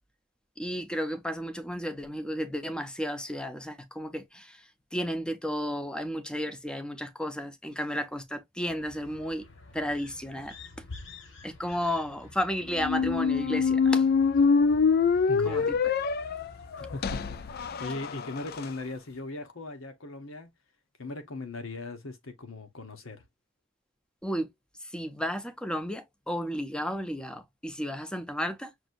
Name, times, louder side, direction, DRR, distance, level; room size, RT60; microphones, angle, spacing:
voice 1, 0.6-9.5 9.7-10.5 11.4-14.1 15.5-15.6 24.2-24.5 24.8-28.7, equal, 5° left, 0.6 m, -33 dB
sound 1, 8.6-17.9, left 3 dB, 65° left, 1.0 m, -49 dB
sound 2, 12.7-18.7, left 5 dB, 50° left, 0.4 m, -25 dB
voice 2, 15.3-15.8 16.8-20.5 21.0-23.2, left 3 dB, 90° left, 1.0 m, -39 dB
6.1 x 2.7 x 2.5 m
head